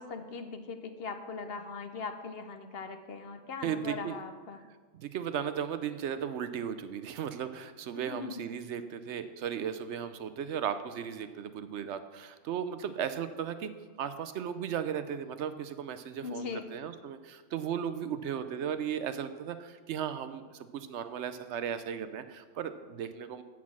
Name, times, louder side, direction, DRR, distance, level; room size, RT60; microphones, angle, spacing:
voice 1, 0.0-4.6 7.9-8.4 16.2-16.7, left 4 dB, 60° left, 7 dB, 0.9 m, -40 dB
voice 2, 3.6-4.1 4.9-13.7 14.0-23.4, right 8 dB, 70° right, 11 dB, 0.9 m, -36 dB
8.3 x 6.0 x 7.3 m, 1.4 s
omnidirectional pair, 1.3 m